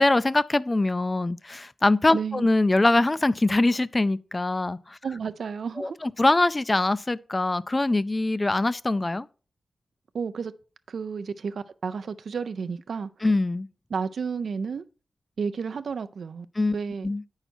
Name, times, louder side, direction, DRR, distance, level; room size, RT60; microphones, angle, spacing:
voice 1, 0.0-5.0 5.8-9.3 13.2-13.7 16.6-16.7 17.0-17.2, left 2 dB, 25° left, 0.4 m, -23 dB
voice 2, 2.1-2.5 5.0-6.0 10.1-10.5 10.9-13.1 13.9-14.8 15.4-16.5 16.7-17.1, right 5 dB, 80° right, 0.4 m, -31 dB
9.1 x 5.6 x 4.3 m
wide cardioid pair, 100°, 0 cm